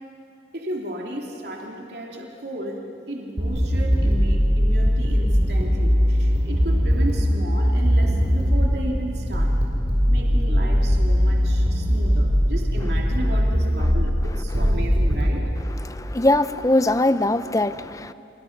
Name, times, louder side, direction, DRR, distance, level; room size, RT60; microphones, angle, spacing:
voice 1, 0.5-9.5 10.1-15.4, right 1 dB, 60° right, 2.9 m, -34 dB
sound 1, 3.4-15.3, equal, 35° right, 4.7 m, -20 dB
voice 2, 15.8-18.1, left 1 dB, 20° left, 0.6 m, -21 dB
29.5 x 28.5 x 6.0 m
head